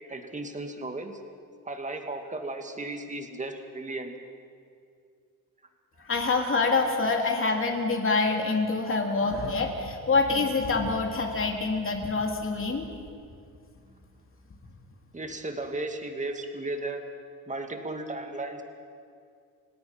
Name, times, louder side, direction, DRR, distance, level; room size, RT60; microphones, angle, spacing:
voice 1, 0.1-1.2 1.6-4.1 15.1-17.0 17.5-18.6, right 2 dB, 20° right, 5 dB, 2.1 m, -35 dB
voice 2, 6.0-12.9, left 3 dB, 40° left, 2 dB, 3.1 m, -26 dB
29.5 x 17.5 x 6.0 m, 2.3 s
cardioid pair, 120°, 33 cm